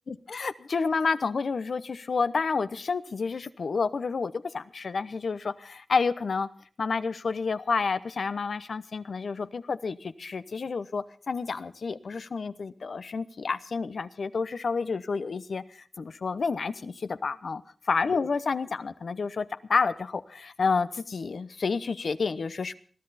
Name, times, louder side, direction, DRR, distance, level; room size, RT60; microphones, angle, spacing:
voice 1, 0.1-6.5 6.8-15.6 16.0-22.8, left 4 dB, 75° left, 13 dB, 0.9 m, -29 dB
21.5 x 13.0 x 4.2 m, 0.44 s
wide cardioid pair, 80°, 0 cm